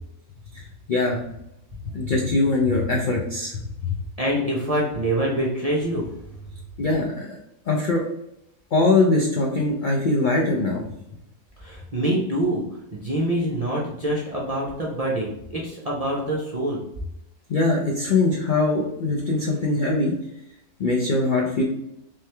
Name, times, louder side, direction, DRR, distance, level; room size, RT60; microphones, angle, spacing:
voice 1, 0.5-1.2 1.9-4.0 6.8-7.4 7.7-8.0 8.7-10.8 17.5-20.1 20.8-21.6, left 3 dB, 80° left, 0 dB, 0.4 m, -22 dB
voice 2, 4.2-6.2 11.6-12.6 12.9-16.8, right 1 dB, 50° right, -4 dB, 0.4 m, -25 dB
3.5 x 3.2 x 3.2 m, 0.83 s
omnidirectional pair, 1.6 m